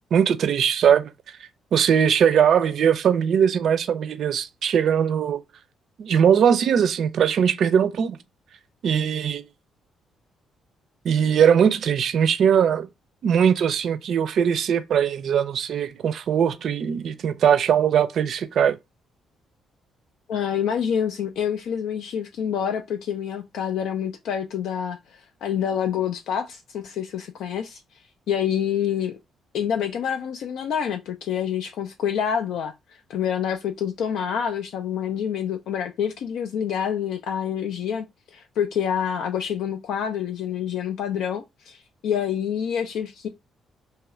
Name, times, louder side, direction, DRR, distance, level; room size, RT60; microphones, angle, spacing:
voice 1, 0.1-1.4 1.7-5.4 6.0-8.2 8.8-9.4 11.0-12.9 13.2-18.8, right 8 dB, 65° right, 0.4 m, -20 dB
voice 2, 20.3-28.0 28.3-29.2 29.5-32.7 33.1-43.3, left 8 dB, 80° left, 0.4 m, -27 dB
2.8 x 2.3 x 2.9 m
cardioid pair, 90°, 0 cm